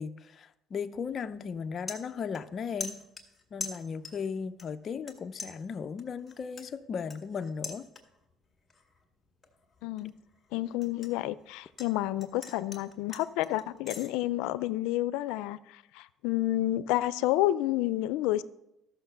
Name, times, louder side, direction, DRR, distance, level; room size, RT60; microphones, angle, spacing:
voice 1, 0.0-3.1 3.5-7.9, left 6 dB, 40° left, 0.6 m, -36 dB
sound 1, 0.9-1.2 1.5-2.5 2.8-4.3 4.6-5.1 5.4-8.3 8.7-9.0 9.4-11.9 12.2-14.1, left 3 dB, 20° left, 2.1 m, -43 dB
voice 2, 9.8-10.1 10.5-18.4, left 15 dB, 90° left, 0.5 m, -30 dB
13.5 x 6.4 x 6.7 m
cardioid pair, 120°, 0 cm